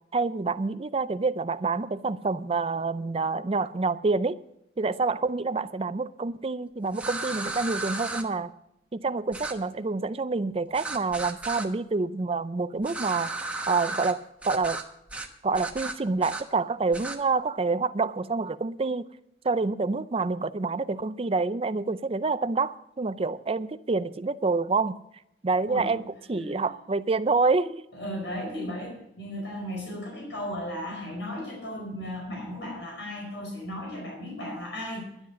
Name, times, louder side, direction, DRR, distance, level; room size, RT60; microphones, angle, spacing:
voice 1, 0.1-4.4 4.8-8.5 8.9-13.3 13.7-14.8 15.4-19.0 19.4-25.0 25.4-27.9, right 4 dB, 30° right, 0.5 m, -27 dB
sound 1, 6.9-8.2 9.3-9.5 10.7-11.7 12.8-14.1 14.4-14.8 15.1-15.3 15.5-16.4 16.9-17.2, right 2 dB, 5° right, 1.1 m, -34 dB
voice 2, 27.9-35.0, left 1 dB, 75° left, 4.9 m, -35 dB
11.0 x 10.5 x 6.2 m
head